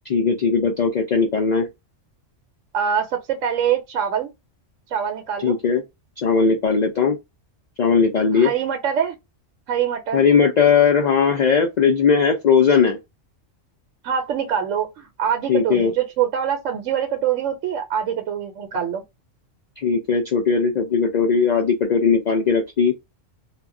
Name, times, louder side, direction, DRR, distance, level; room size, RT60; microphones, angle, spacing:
voice 1, 0.1-1.7 5.4-5.8 6.2-7.2 7.8-8.5 10.1-13.0 15.5-15.9 19.8-22.9, left 5 dB, 90° left, 0.3 m, -18 dB
voice 2, 2.7-4.3 4.9-5.6 8.3-9.2 9.7-10.2 14.0-19.0, right 8 dB, 80° right, 1.0 m, -24 dB
2.2 x 2.1 x 3.6 m
omnidirectional pair, 1.3 m